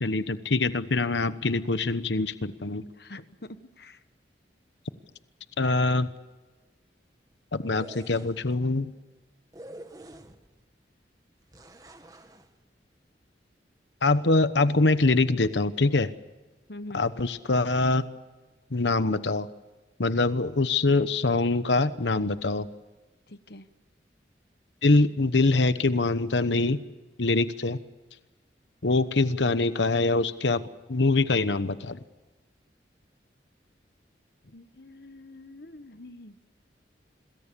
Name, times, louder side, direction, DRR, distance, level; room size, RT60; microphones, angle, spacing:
voice 1, 0.0-2.8 5.6-6.1 7.5-8.9 14.0-16.1 16.9-18.0 18.7-19.5 20.0-22.7 24.8-26.8 27.2-27.8 28.8-30.6 30.9-32.0, left 3 dB, 80° left, 13 dB, 1.1 m, -24 dB
voice 2, 2.9-4.0 16.7-17.0 23.3-23.7 34.4-36.4, left 1 dB, 60° left, 12 dB, 1.3 m, -45 dB
sound 1, 7.6-8.5 9.5-10.6 11.5-12.5, right 1 dB, 20° right, 1.7 m, -47 dB
27.0 x 21.5 x 6.9 m, 1.2 s
head